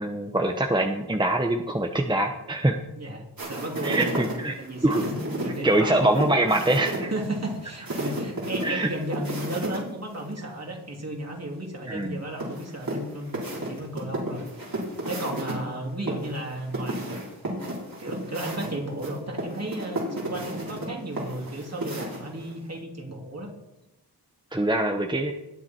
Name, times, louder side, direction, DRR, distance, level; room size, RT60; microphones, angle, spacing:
voice 1, 0.0-2.8 3.8-4.6 4.8-5.0 5.6-7.1 8.6-8.9 11.9-12.2 24.5-25.3, right 1 dB, 10° right, 4 dB, 0.9 m, -24 dB
voice 2, 3.0-4.3 4.6-6.2 7.1-14.7 15.0-17.1 18.0-23.5, right 1 dB, 40° right, 1 dB, 3.1 m, -34 dB
sound 1, 3.4-9.8 10.1-10.2 12.4-15.5 16.1-22.5, right 1 dB, 60° right, 4.6 m, -33 dB
20.5 x 7.3 x 4.5 m, 0.93 s
wide cardioid pair, 75°, 40 cm